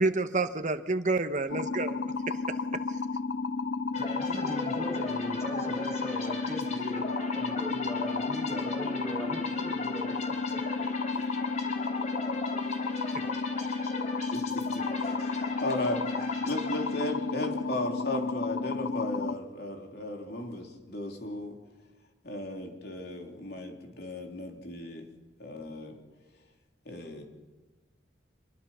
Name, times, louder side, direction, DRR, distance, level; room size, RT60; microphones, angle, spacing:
voice 1, 0.0-2.4 13.1-13.2, right 3 dB, 45° right, 8 dB, 1.2 m, -29 dB
sound 1, 1.5-19.3, left 4 dB, 75° left, 0.6 m, -32 dB
sound 2, 3.9-17.5, left 2 dB, 40° left, 3.9 m, -39 dB
voice 2, 3.9-7.1 7.3-10.1 10.5-10.6, equal, 15° left, -1 dB, 7.1 m, -39 dB
voice 3, 14.3-14.6 15.0-21.6 22.2-25.1 25.4-26.0 26.9-27.2, left 1 dB, 60° left, 2 dB, 3.5 m, -36 dB
25.5 x 22.0 x 5.7 m, 1.2 s
head